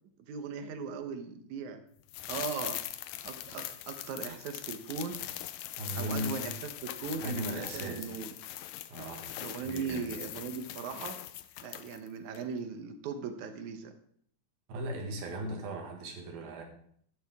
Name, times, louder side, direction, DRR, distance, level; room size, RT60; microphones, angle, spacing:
voice 1, 0.3-1.8 2.3-2.8 3.1-5.2 6.0-8.3 9.4-11.2 11.6-13.9, right 6 dB, 65° right, 7 dB, 2.2 m, -39 dB
sound 1, 2.1-12.1 12.3-12.4, left 13 dB, 85° left, 1.6 m, -41 dB
voice 2, 5.8-6.4 7.2-8.1 8.9-9.3 9.6-10.1 14.7-16.6, right 1 dB, 90° right, 2 dB, 3.8 m, -37 dB
12.5 x 11.5 x 3.6 m, 0.66 s
omnidirectional pair, 4.1 m